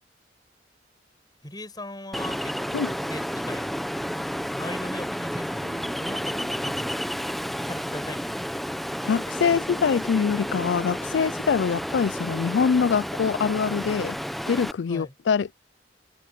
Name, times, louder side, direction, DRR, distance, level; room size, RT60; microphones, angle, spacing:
voice 1, 1.4-4.0 4.5-5.7 6.0-6.9 7.6-8.6 14.9-15.1, left 1 dB, 20° left, 6.3 m, -39 dB
Ocean, 2.1-14.7, equal, ahead, 0.7 m, -31 dB
Bass guitar, 5.6-9.9, right 1 dB, 35° right, 3.4 m, -48 dB
voice 2, 9.1-14.2 14.5-15.5, left 6 dB, 80° left, 0.4 m, -24 dB
head